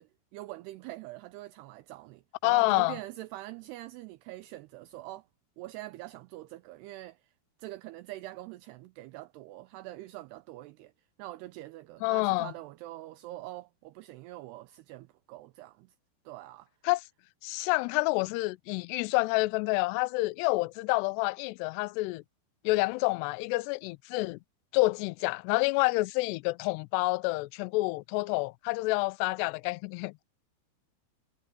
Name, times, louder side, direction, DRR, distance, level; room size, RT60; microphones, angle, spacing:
voice 1, 0.0-5.3 5.6-7.3 7.6-10.9 11.2-16.0 16.3-16.7, right 17 dB, 80° right, 2.6 m, -44 dB
voice 2, 2.4-3.0 12.0-12.5 16.9-17.0 17.4-22.2 22.6-24.4 24.7-30.1, left 24 dB, 85° left, 2.6 m, -28 dB
omnidirectional pair, 4.9 m